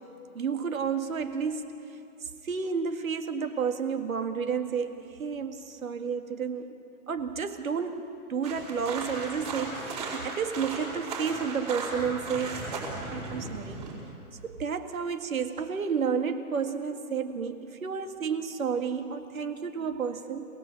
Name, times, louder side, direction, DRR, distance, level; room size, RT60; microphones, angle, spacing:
voice 1, 0.3-1.7 2.4-6.8 7.1-8.0 8.3-12.8 13.1-13.8 14.4-20.4, right 6 dB, 65° right, 7 dB, 2.0 m, -31 dB
sound 1, 8.4-13.9, right 3 dB, 25° right, 4.5 m, -36 dB
27.0 x 18.0 x 7.7 m, 2.8 s
hypercardioid pair, 175°, 44 cm